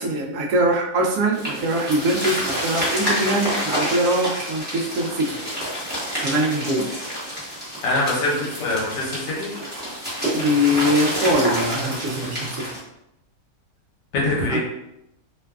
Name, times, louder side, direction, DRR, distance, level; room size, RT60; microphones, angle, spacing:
voice 1, 0.0-5.4 6.2-6.9 10.3-12.8 14.5-14.6, equal, 70° right, 0 dB, 0.8 m, -22 dB
sound 1, 1.3-12.8, equal, 10° right, 0.6 m, -28 dB
voice 2, 7.8-9.5 14.1-14.6, left 2 dB, 75° left, -3 dB, 1.4 m, -23 dB
3.1 x 2.2 x 2.3 m, 0.83 s
omnidirectional pair, 1.9 m